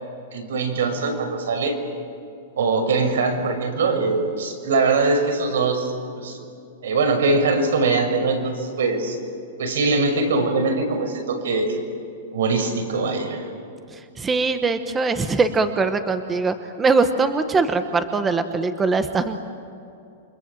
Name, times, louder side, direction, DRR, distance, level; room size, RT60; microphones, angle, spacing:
voice 1, 0.3-1.8 2.6-6.4 6.8-9.2 9.6-11.8 12.3-13.5, right 3 dB, 85° right, 5 dB, 6.4 m, -22 dB
voice 2, 13.9-19.4, right 4 dB, 10° right, 9 dB, 1.0 m, -22 dB
29.0 x 25.5 x 7.6 m, 2.6 s
supercardioid pair, 165°, 0 cm